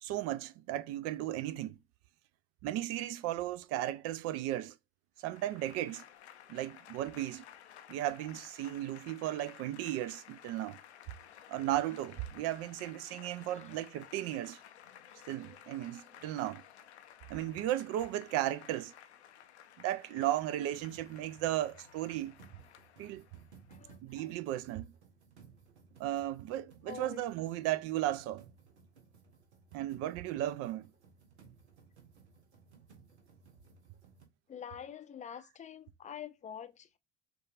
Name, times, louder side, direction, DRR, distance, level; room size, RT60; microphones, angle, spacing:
voice 1, 0.0-1.8 2.6-4.7 5.2-6.0 6.5-7.4 7.9-10.8 11.5-14.6 15.3-16.6 17.3-18.9 19.8-22.4 23.0-23.2 24.0-24.9 26.0-28.4 29.7-30.9, right 13 dB, 45° right, 0.5 m, -35 dB
Applause / Crowd, 5.2-23.7, left 10 dB, 80° left, 0.5 m, -55 dB
sound 1, 20.7-34.3, right 5 dB, 80° right, 0.8 m, -60 dB
voice 2, 23.7-24.3 26.9-27.2 34.5-37.0, left 8 dB, 20° left, 0.5 m, -46 dB
6.4 x 2.4 x 2.4 m
figure-of-eight pair, 60°, 33 cm